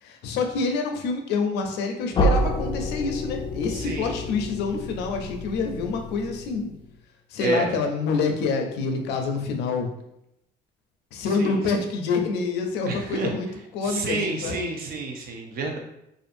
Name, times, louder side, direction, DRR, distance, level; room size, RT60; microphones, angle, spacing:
voice 1, 0.0-6.7 7.3-9.9 11.1-13.5 13.7-14.6, left 4 dB, 80° left, 4 dB, 0.5 m, -27 dB
sound 1, 2.1-7.0, equal, 30° left, 0.3 m, -28 dB
voice 2, 3.7-4.2 7.4-7.7 11.4-11.8 12.9-13.3 13.8-15.8, right 3 dB, 60° right, 1 dB, 0.6 m, -29 dB
2.5 x 2.5 x 2.5 m, 0.82 s
cardioid pair, 110°, 17 cm